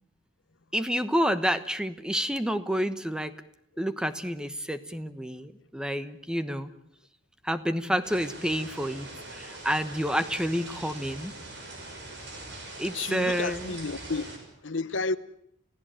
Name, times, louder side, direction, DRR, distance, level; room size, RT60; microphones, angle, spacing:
voice 1, 0.7-3.3 3.8-6.7 7.4-11.3 12.8-13.7, equal, 5° right, 1.1 m, -29 dB
sound 1, 8.0-14.4, right 2 dB, 60° right, 6.8 m, -42 dB
voice 2, 12.9-14.3 14.6-15.2, left 3 dB, 65° left, 0.9 m, -31 dB
30.0 x 16.5 x 8.9 m
head